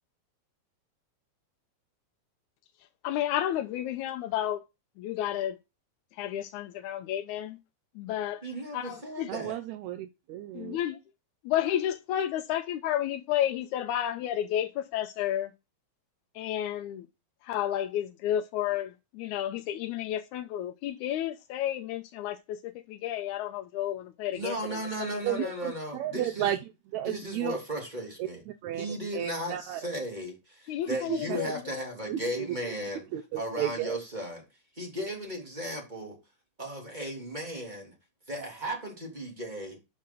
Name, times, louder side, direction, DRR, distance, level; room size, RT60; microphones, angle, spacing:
voice 1, 3.0-4.6 5.0-5.6 6.2-7.6 8.0-8.4 8.7-9.3 10.5-11.0 11.5-15.5 16.4-17.1 17.4-24.8 25.4-25.5 30.7-31.9, left 11 dB, 90° left, 2.1 m, -31 dB
voice 2, 8.4-9.6 24.3-26.5 27.0-28.4 28.8-33.0 33.3-34.4 34.8-36.2 36.6-37.9 38.3-39.8, right 1 dB, 15° right, 2.9 m, -36 dB
voice 3, 9.3-10.8 25.2-26.6 26.9-27.6 28.2-28.9 29.1-29.8 30.9-31.4 32.1-32.5 33.1-34.0, right 12 dB, 80° right, 1.8 m, -33 dB
8.5 x 5.7 x 3.7 m
omnidirectional pair, 3.4 m